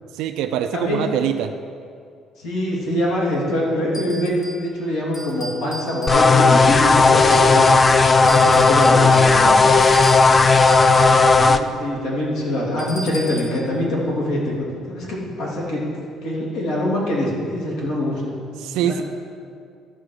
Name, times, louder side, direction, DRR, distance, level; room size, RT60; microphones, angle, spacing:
voice 1, 0.1-1.5 18.6-19.0, right 10 dB, 85° right, 6 dB, 0.4 m, -23 dB
voice 2, 0.7-1.1 2.4-4.3 4.6-7.6 8.0-9.6 11.4-15.8 16.2-18.4 18.8-19.0, left 1 dB, 85° left, -4 dB, 2.9 m, -24 dB
sound 1, 3.9-4.7 5.1-6.6 7.2-7.9 8.3-11.2 12.8-13.6, equal, 40° left, 2.4 m, -36 dB
sound 2, 6.1-11.6, left 3 dB, 20° left, 0.3 m, -14 dB
12.5 x 5.0 x 6.5 m, 2.3 s
cardioid pair, 165°, 0 cm